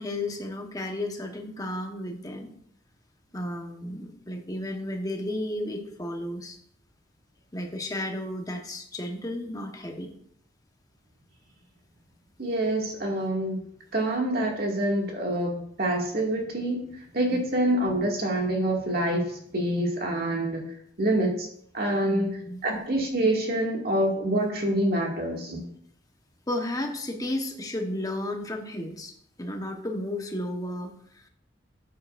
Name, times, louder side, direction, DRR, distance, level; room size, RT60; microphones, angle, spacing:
voice 1, 0.0-2.5 3.3-6.6 7.5-10.1 17.3-17.4 22.0-22.6 26.5-29.1 29.4-31.3, left 1 dB, 20° left, 3 dB, 1.2 m, -33 dB
voice 2, 12.4-13.6 13.9-16.9 17.1-20.7 21.0-21.5 21.7-22.4 22.6-25.6, right 1 dB, 55° right, 0 dB, 2.2 m, -26 dB
12.5 x 8.5 x 2.6 m, 0.67 s
head